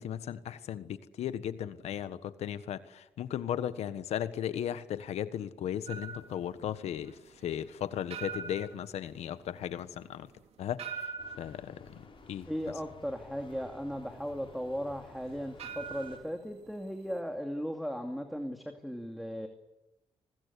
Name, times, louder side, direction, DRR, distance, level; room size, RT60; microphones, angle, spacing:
voice 1, 0.0-7.2 7.4-10.3 10.6-11.0 11.4-12.5, left 10 dB, 90° left, 13 dB, 1.4 m, -36 dB
sound 1, 5.9-17.2, right 6 dB, 75° right, 3.1 m, -45 dB
sound 2, 11.2-16.2, left 5 dB, 50° left, 6.2 m, -54 dB
voice 2, 12.4-19.5, equal, ahead, 5 dB, 2.6 m, -37 dB
29.5 x 21.0 x 8.4 m, 0.95 s
cardioid pair, 85°, 11 cm